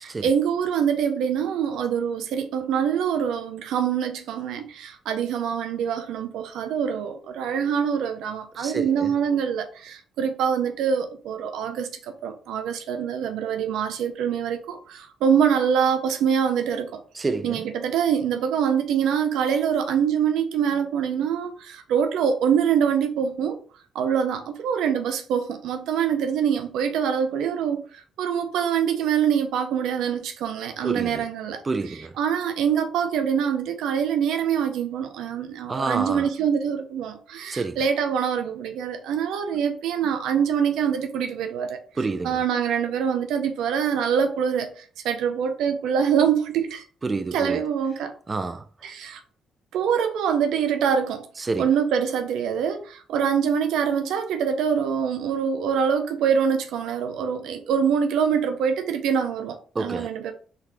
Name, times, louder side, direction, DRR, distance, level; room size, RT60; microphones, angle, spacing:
voice 1, 0.0-11.9 12.2-17.0 17.4-23.6 23.9-27.8 28.2-31.6 32.2-41.8 42.2-46.8 47.3-48.1 48.8-49.2 49.7-51.3 51.6-60.3, right 7 dB, 80° right, 0.6 m, -24 dB
voice 2, 8.5-9.1 17.1-17.7 30.8-31.2 31.6-32.1 35.7-36.3 37.5-37.8 42.0-42.4 47.0-47.6 48.3-48.6 51.4-51.7 59.8-60.1, right 3 dB, 35° right, 0.4 m, -28 dB
3.9 x 2.7 x 3.3 m
supercardioid pair, 65°, 0 cm